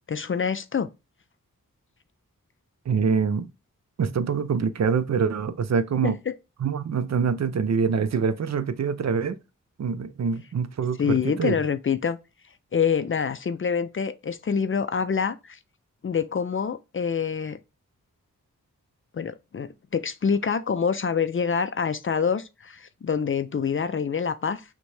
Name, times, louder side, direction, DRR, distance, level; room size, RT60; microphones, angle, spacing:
voice 1, 0.1-0.9 6.0-6.3 11.0-12.2 12.7-15.6 16.0-17.6 19.1-24.6, left 6 dB, 40° left, 0.4 m, -26 dB
voice 2, 2.9-3.5 4.0-6.2 6.6-9.4 9.8-11.6, right 6 dB, 50° right, 0.5 m, -25 dB
5.9 x 2.2 x 3.2 m
cardioid pair, 40°, 34 cm